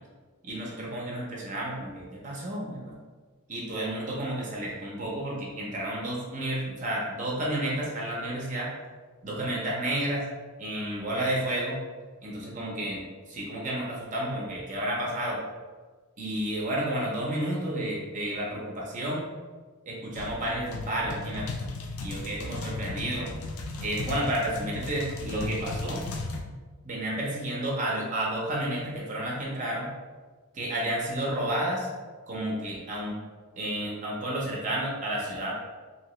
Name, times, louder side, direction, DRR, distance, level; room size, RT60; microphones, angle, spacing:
voice 1, 0.4-2.9 3.5-8.7 9.2-10.2 10.6-11.8 12.2-15.4 16.2-19.3 19.9-21.6 22.0-23.3 23.8-26.0 26.8-29.9 30.5-31.9 32.3-33.2 33.6-35.6, right 1 dB, 35° right, -3 dB, 0.5 m, -31 dB
sound 1, 20.2-26.4, left 3 dB, 80° left, 0.4 m, -36 dB
2.8 x 2.8 x 3.0 m, 1.4 s
head